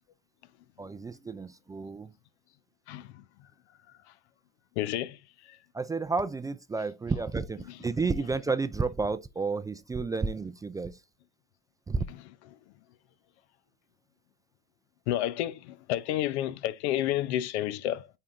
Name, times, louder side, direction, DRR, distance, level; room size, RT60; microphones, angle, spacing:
voice 1, 0.8-2.1 5.7-11.0 11.9-12.0, right 4 dB, 10° right, 0.3 m, -31 dB
voice 2, 2.9-3.2 4.8-5.2 5.5-5.6 15.1-18.1, left 13 dB, 80° left, 0.7 m, -30 dB
8.5 x 4.5 x 2.5 m
supercardioid pair, 105°, 32 cm